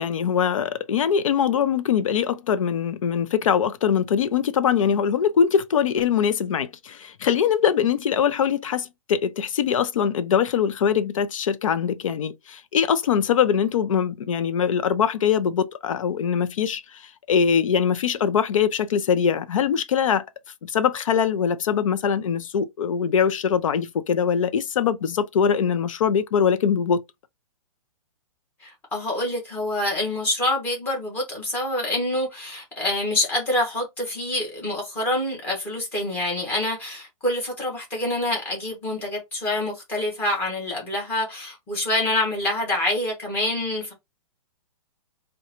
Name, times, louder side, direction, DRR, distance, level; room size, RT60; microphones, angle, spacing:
voice 1, 0.0-20.2 20.6-27.0, left 7 dB, 60° left, 0.5 m, -22 dB
voice 2, 28.6-43.9, left 1 dB, 10° left, 1.1 m, -26 dB
3.7 x 2.2 x 2.9 m
hypercardioid pair, 170°, 19 cm